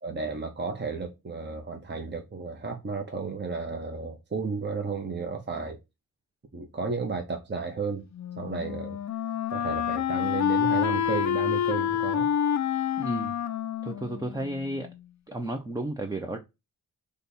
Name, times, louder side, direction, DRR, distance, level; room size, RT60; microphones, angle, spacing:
voice 1, 0.0-5.8 6.5-8.1 8.4-9.0 9.5-12.3, right 4 dB, 30° right, 0.9 m, -33 dB
Wind instrument woodwind instrument, 8.1-15.0, left 9 dB, 55° left, 0.5 m, -28 dB
voice 2, 13.0-13.3 13.8-14.9 15.3-16.4, right 1 dB, 10° right, 0.6 m, -32 dB
5.2 x 2.3 x 4.1 m
wide cardioid pair, 105°, 35 cm